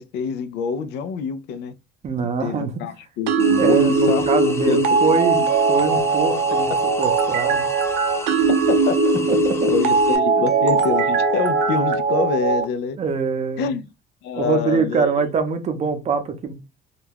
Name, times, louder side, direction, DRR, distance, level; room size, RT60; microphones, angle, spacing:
voice 1, 0.0-1.7 2.4-4.3 4.7-5.0 5.4-5.5 8.5-9.0 9.7-13.0 13.6-13.9 14.2-15.1, left 6 dB, 80° left, 0.4 m, -26 dB
voice 2, 2.0-2.8 3.6-5.4 5.7-6.7 7.0-7.7 9.3-9.7 10.4-10.5 13.0-13.7 14.4-16.5, right 5 dB, 40° right, 0.6 m, -23 dB
sound 1, 3.3-12.6, right 3 dB, 90° right, 0.4 m, -19 dB
sound 2, 3.4-10.2, left 3 dB, 15° left, 0.4 m, -35 dB
2.3 x 2.2 x 3.3 m
cardioid pair, 110°, 17 cm